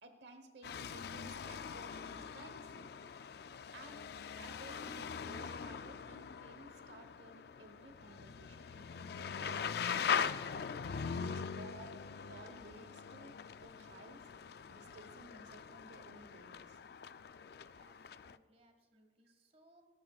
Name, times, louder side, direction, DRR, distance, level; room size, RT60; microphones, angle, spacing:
voice 1, 0.0-2.9 3.7-4.1 4.4-10.1 11.2-12.0 12.3-14.2 14.7-16.8, right 2 dB, 80° right, 7 dB, 1.1 m, -56 dB
sound 1, 0.6-18.4, left 6 dB, 65° left, 0.4 m, -42 dB
voice 2, 10.9-11.8 17.8-19.8, right 1 dB, 35° right, 5 dB, 1.6 m, -66 dB
18.0 x 16.5 x 2.4 m, 1.5 s
head